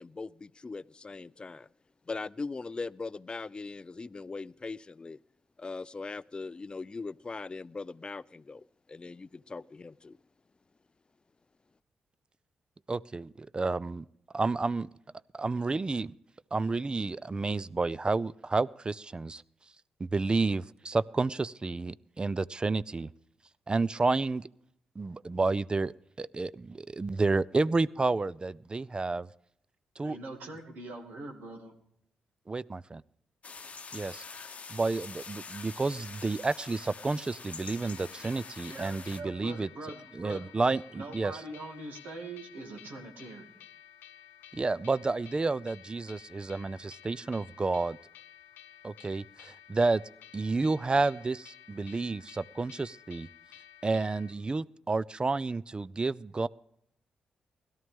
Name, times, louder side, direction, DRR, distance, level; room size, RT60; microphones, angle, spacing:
voice 1, 0.0-1.7 2.1-5.2 5.6-10.2, left 3 dB, 30° left, 19 dB, 0.4 m, -40 dB
voice 2, 12.9-14.1 14.3-14.9 15.3-16.1 16.5-19.4 20.0-23.1 23.7-24.5 25.0-29.3 30.0-30.2 32.5-33.0 33.9-34.2 34.7-39.7 40.1-41.3 44.5-48.0 48.8-50.0 50.3-53.3 53.8-56.5, right 3 dB, 30° right, 20 dB, 0.4 m, -30 dB
voice 3, 30.0-31.7 38.7-40.5 41.0-43.6, right 2 dB, 75° right, 2 dB, 2.3 m, -43 dB
sound 1, 33.4-39.2, left 5 dB, 45° left, 0.8 m, -45 dB
sound 2, 37.6-54.3, left 10 dB, 85° left, 0.6 m, -54 dB
17.0 x 12.5 x 3.6 m, 0.72 s
supercardioid pair, 55°, 3 cm